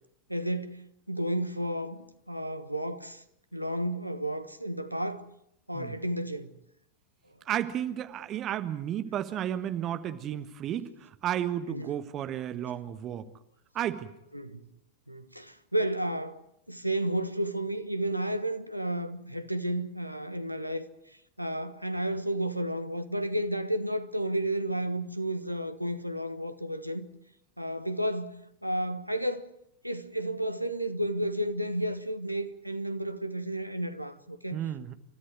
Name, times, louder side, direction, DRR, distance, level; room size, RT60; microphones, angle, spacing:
voice 1, 0.3-3.2 3.5-5.2 5.7-6.5 11.7-11.9 14.3-14.6 15.1-16.4 16.7-20.9 21.4-27.1 27.6-29.5 29.8-34.7, right 1 dB, 90° right, 1.3 m, -32 dB
voice 2, 7.4-13.3 13.7-14.1 34.5-34.9, right 10 dB, 30° right, 1.4 m, -33 dB
30.0 x 13.5 x 9.5 m
figure-of-eight pair, 90°, 0 cm